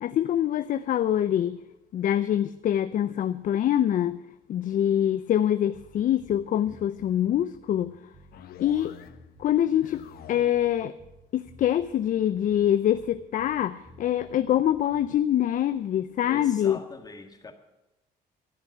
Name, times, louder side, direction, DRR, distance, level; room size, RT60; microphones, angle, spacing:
voice 1, 0.0-1.6 1.9-4.2 4.5-8.0 8.6-8.9 9.4-10.0 10.3-10.9 11.3-16.8, left 11 dB, 50° left, 12 dB, 0.5 m, -25 dB
sound 1, 5.7-15.3, right 1 dB, 30° right, 1.2 m, -54 dB
sound 2, 8.3-9.3 9.6-10.7, left 11 dB, 65° left, 0.9 m, -47 dB
voice 2, 16.2-17.5, left 3 dB, 20° left, 5 dB, 1.8 m, -42 dB
13.5 x 7.1 x 9.6 m, 0.98 s
cardioid pair, 110°, 17 cm